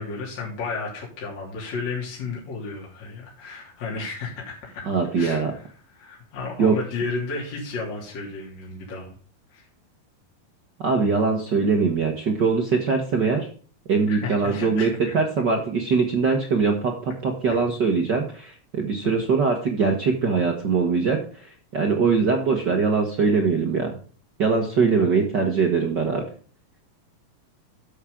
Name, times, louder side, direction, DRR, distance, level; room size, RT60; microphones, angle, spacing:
voice 1, 0.0-4.9 5.2-9.1 9.5-9.7 14.1-15.1 17.5-17.6 19.0-19.3 25.0-25.1, left 4 dB, 50° left, -3 dB, 4.2 m, -33 dB
voice 2, 4.8-5.5 6.6-6.7 10.8-13.5 13.9-23.9 24.4-26.2, right 5 dB, 75° right, 2 dB, 0.9 m, -22 dB
12.0 x 7.3 x 3.7 m, 0.43 s
omnidirectional pair, 4.2 m